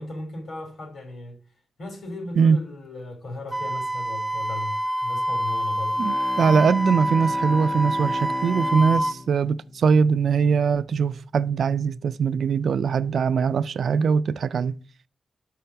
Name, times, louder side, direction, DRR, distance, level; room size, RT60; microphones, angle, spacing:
voice 1, 0.0-1.4 1.8-6.0, left 2 dB, 65° left, 3.0 m, -36 dB
Wind instrument woodwind instrument, 3.5-9.2, right 1 dB, 10° right, 0.5 m, -26 dB
Bowed string instrument, 5.9-10.8, left 4 dB, 45° left, 0.3 m, -37 dB
voice 2, 6.0-14.7, right 6 dB, 75° right, 0.3 m, -21 dB
6.4 x 5.6 x 6.7 m
wide cardioid pair, 150°, 0 cm